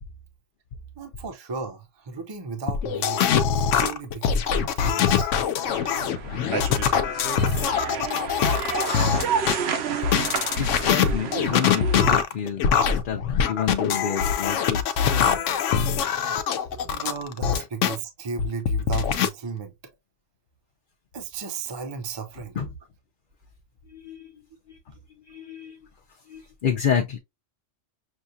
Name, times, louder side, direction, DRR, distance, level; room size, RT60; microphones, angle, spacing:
voice 1, 1.0-5.3 16.8-19.7 21.1-22.5, right 5 dB, 30° right, 0.6 m, -35 dB
sound 1, 2.7-9.6 10.0-17.9 18.4-19.3, left 7 dB, 90° left, 1.0 m, -23 dB
sound 2, 5.6-12.2, right 6 dB, 65° right, 0.9 m, -30 dB
voice 2, 10.6-15.4 16.3-16.4 22.5-22.7 23.9-24.4 24.7-24.8 25.2-25.8 26.3-27.2, left 8 dB, 55° left, 0.7 m, -29 dB
6.2 x 2.3 x 2.6 m
omnidirectional pair, 1.2 m